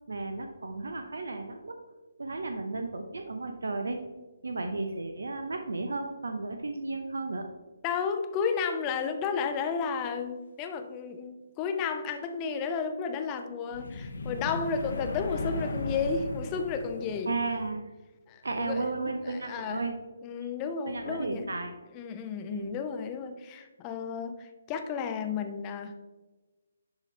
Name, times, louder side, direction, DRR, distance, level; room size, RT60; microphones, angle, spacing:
voice 1, 0.1-1.8 2.2-4.0 4.4-7.5 17.3-17.8 18.4-19.9 20.8-21.7 22.5-22.8, right 3 dB, 65° right, 5 dB, 0.6 m, -34 dB
voice 2, 7.8-17.3 18.3-19.8 20.2-21.5 21.9-25.9, left 6 dB, 20° left, 6 dB, 0.6 m, -33 dB
sound 1, 13.7-17.7, left 2 dB, 60° left, 0.9 m, -36 dB
10.5 x 3.8 x 3.2 m, 1.2 s
figure-of-eight pair, 140°, 0 cm